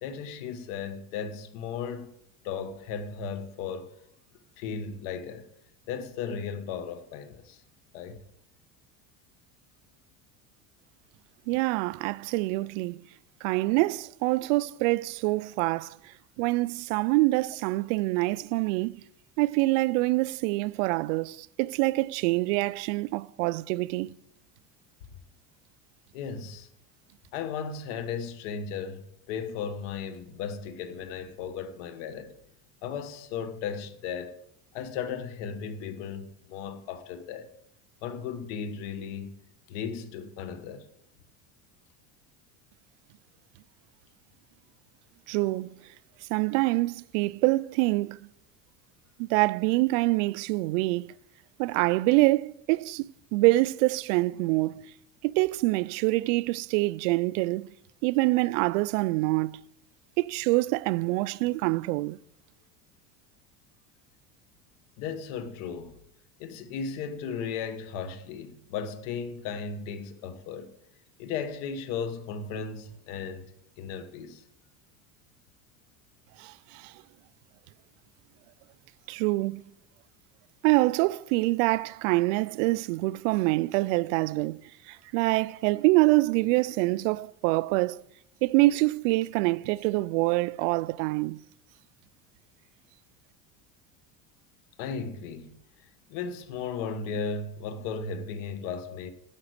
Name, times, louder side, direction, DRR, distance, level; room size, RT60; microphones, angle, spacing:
voice 1, 0.0-2.1 2.4-3.9 4.6-5.5 5.9-7.6 7.9-8.2 26.1-26.7 27.3-32.3 32.8-34.4 34.7-37.5 38.0-39.3 39.7-40.8 65.0-66.0 66.4-70.7 71.2-73.5 73.8-74.4 94.8-95.6 96.1-99.1, left 6 dB, 75° left, 1.5 m, -35 dB
voice 2, 11.5-13.0 13.4-16.0 16.4-19.0 19.4-24.1 45.3-45.7 46.3-48.2 49.3-51.1 51.6-54.8 55.2-57.7 58.0-59.6 60.2-62.2 76.4-76.9 79.1-79.6 80.6-84.6 84.9-88.0 88.4-91.4, right 21 dB, 80° right, 0.5 m, -25 dB
11.0 x 5.8 x 8.0 m
cardioid pair, 140°, 36 cm